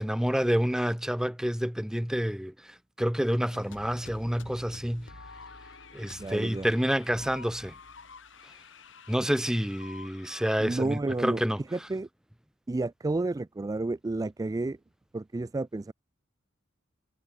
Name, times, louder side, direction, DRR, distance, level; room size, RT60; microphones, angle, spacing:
voice 1, 0.0-2.5 3.0-5.1 5.9-7.7 9.1-11.6, equal, 5° right, 0.8 m, -28 dB
sound 1, 3.5-10.6, left 3 dB, 70° left, 5.0 m, -49 dB
voice 2, 6.2-6.7 10.6-11.4 11.7-12.1 12.7-14.8 15.1-15.9, right 2 dB, 20° right, 0.3 m, -31 dB
head